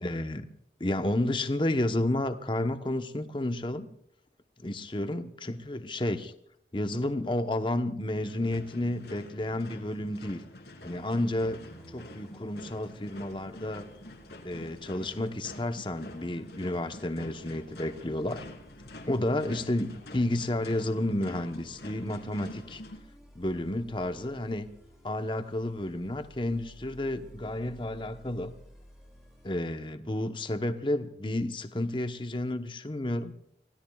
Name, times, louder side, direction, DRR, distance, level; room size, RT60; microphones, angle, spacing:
voice 1, 0.0-0.5 0.8-3.9 4.6-6.3 6.7-10.4 10.8-11.6 11.9-13.9 14.4-18.5 19.0-19.9 20.1-22.8 23.3-24.7 25.0-28.5 29.4-33.3, left 1 dB, 25° left, 8 dB, 1.0 m, -31 dB
sound 1, 8.3-23.0, left 1 dB, 65° left, 2.7 m, -47 dB
sound 2, 10.8-29.5, equal, ahead, 4.1 m, -56 dB
30.0 x 16.5 x 2.4 m, 0.72 s
head